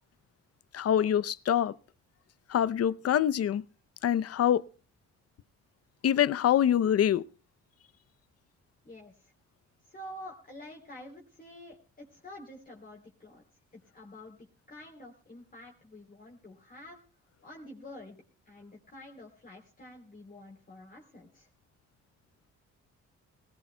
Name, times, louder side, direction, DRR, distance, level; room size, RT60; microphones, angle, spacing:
voice 1, 0.7-1.7 2.5-3.6 4.0-4.6 6.0-7.2, left 10 dB, 55° left, 0.7 m, -25 dB
voice 2, 8.8-9.3 9.9-13.4 13.7-17.0 17.4-18.2 18.5-21.5, left 1 dB, 30° left, 3.5 m, -48 dB
19.0 x 18.5 x 2.2 m
cardioid pair, 90°, 30 cm